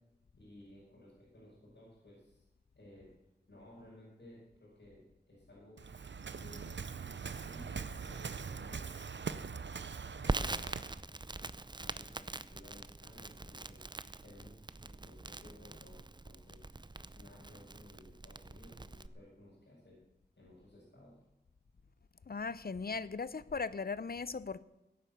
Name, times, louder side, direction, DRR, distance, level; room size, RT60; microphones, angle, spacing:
voice 1, 0.4-2.4 2.7-3.1 3.5-5.8 6.3-6.9 7.4-9.0 9.2-9.5 10.0-10.9 11.7-13.9 14.2-16.7 17.1-20.0 20.4-21.2, left 1 dB, 85° left, 6.1 m, -57 dB
Waves surf, 5.8-11.0, right 5 dB, 85° right, 0.6 m, -42 dB
Crackle, 10.3-19.1, right 2 dB, 25° right, 0.5 m, -42 dB
voice 2, 22.3-24.6, left 4 dB, 60° left, 0.6 m, -38 dB
16.5 x 9.1 x 6.8 m
wide cardioid pair, 60°, 18 cm